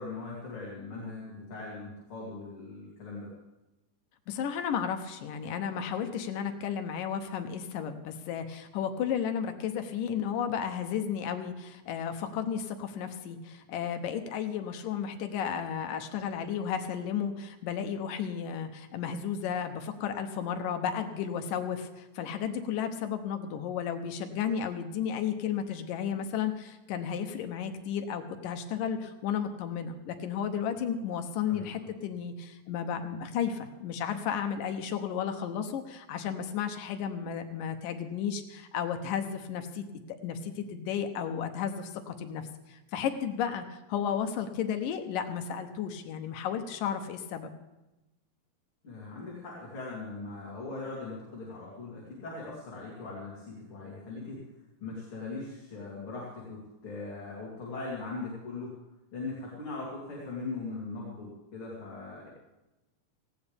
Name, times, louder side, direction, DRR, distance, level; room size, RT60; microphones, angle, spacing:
voice 1, 0.0-3.3 31.5-31.7 48.8-54.4 54.8-58.8 59.1-62.3, left 3 dB, 40° left, -5 dB, 3.7 m, -40 dB
voice 2, 4.3-39.8 40.2-47.5, left 8 dB, 80° left, 7 dB, 2.6 m, -33 dB
18.0 x 16.5 x 3.5 m, 1.0 s
omnidirectional pair, 3.8 m